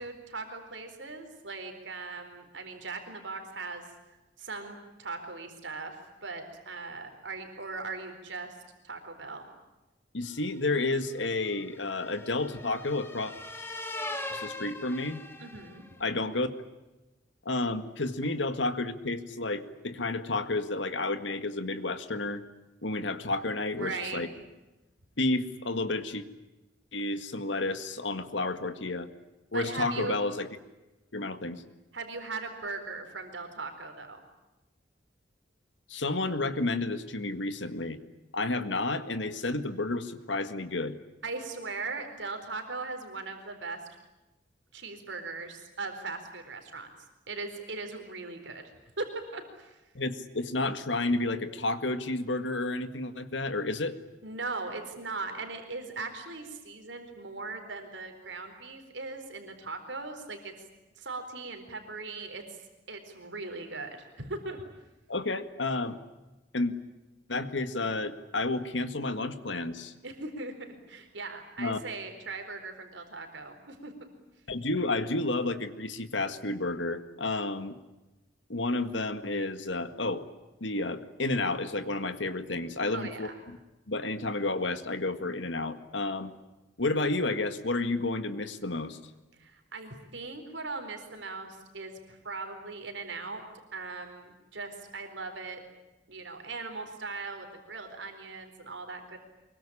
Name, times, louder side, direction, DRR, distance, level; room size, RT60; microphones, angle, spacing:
voice 1, 0.0-3.8 4.4-8.6 8.8-9.5 15.4-15.8 23.8-24.2 29.5-30.2 31.9-34.2 41.2-43.8 44.7-46.9 47.3-48.6 49.0-49.8 54.2-60.5 61.0-64.6 70.0-70.5 70.9-73.9 82.9-83.3 89.3-93.4 93.7-95.6 96.1-99.2, right 3 dB, 75° right, 5 dB, 4.2 m, -39 dB
voice 2, 10.1-13.3 14.3-15.2 16.0-16.5 17.5-22.4 22.8-24.3 25.2-26.2 26.9-29.1 29.5-30.5 31.1-31.6 35.9-38.0 38.3-41.0 50.0-54.0 65.1-66.0 66.5-66.7 67.3-69.9 71.6-71.8 74.5-77.8 78.5-80.3 80.6-83.3 83.9-86.3 86.8-89.0, left 2 dB, 75° left, 10 dB, 1.9 m, -31 dB
sound 1, 10.5-15.9, left 2 dB, 15° left, 2.2 m, -41 dB
24.5 x 23.0 x 10.0 m, 1.1 s
head